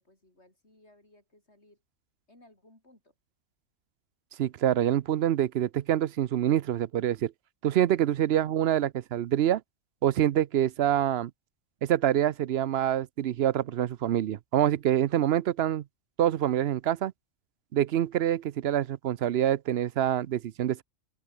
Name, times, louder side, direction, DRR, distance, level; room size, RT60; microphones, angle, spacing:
voice 1, 0.0-1.8 2.3-3.1 8.2-8.5, left 1 dB, 55° left, 7.8 m, -60 dB
voice 2, 4.4-7.3 7.6-9.6 10.0-11.3 11.8-15.8 16.2-17.1 17.7-20.8, right 11 dB, 60° right, 0.8 m, -26 dB
open air
omnidirectional pair, 1.4 m